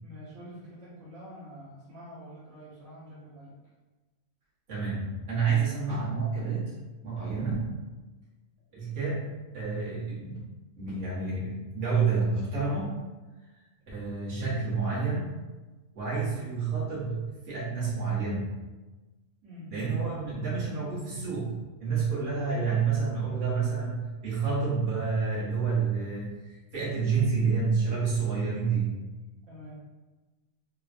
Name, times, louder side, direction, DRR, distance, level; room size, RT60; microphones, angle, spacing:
voice 1, 0.0-3.6 19.4-19.8 29.5-29.7, equal, 75° right, -9 dB, 1.3 m, -46 dB
voice 2, 4.7-6.7 7.0-7.8 8.7-10.4 10.8-13.0 13.9-15.4 15.9-18.5 19.7-29.0, right 5 dB, 50° right, -9 dB, 1.3 m, -29 dB
3.7 x 2.1 x 2.5 m, 1.2 s
omnidirectional pair, 1.4 m